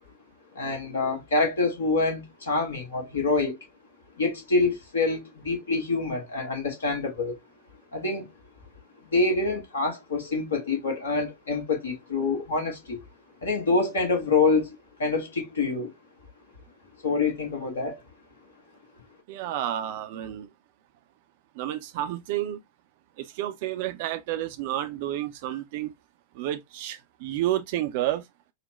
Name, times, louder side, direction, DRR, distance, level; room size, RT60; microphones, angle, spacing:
voice 1, 0.5-3.6 4.2-7.3 7.9-8.3 9.0-13.0 13.4-15.9 17.0-18.0, left 3 dB, 65° left, 1.4 m, -26 dB
voice 2, 19.3-20.5 21.6-22.6 23.2-25.9 26.3-28.3, right 13 dB, 50° right, 0.5 m, -30 dB
4.0 x 2.1 x 2.9 m
figure-of-eight pair, 90°, 0 cm